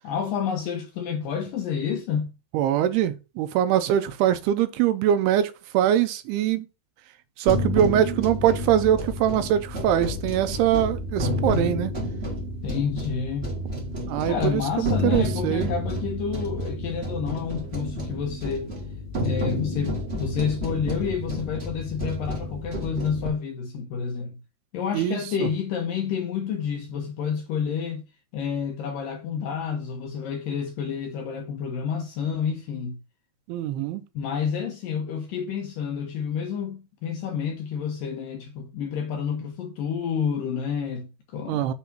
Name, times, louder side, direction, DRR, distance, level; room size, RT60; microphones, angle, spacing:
voice 1, 0.0-2.3 12.6-13.6 14.3-18.7 19.2-24.4 24.7-28.0 28.3-33.0 34.1-41.7, left 7 dB, 75° left, 2.2 m, -29 dB
voice 2, 2.5-6.7 7.4-11.9 14.1-15.7 24.9-25.5 33.5-34.0 41.5-41.7, right 10 dB, 80° right, 2.5 m, -23 dB
sound 1, 7.5-23.3, left 1 dB, 65° right, 0.6 m, -30 dB
7.1 x 3.4 x 6.0 m
omnidirectional pair, 4.8 m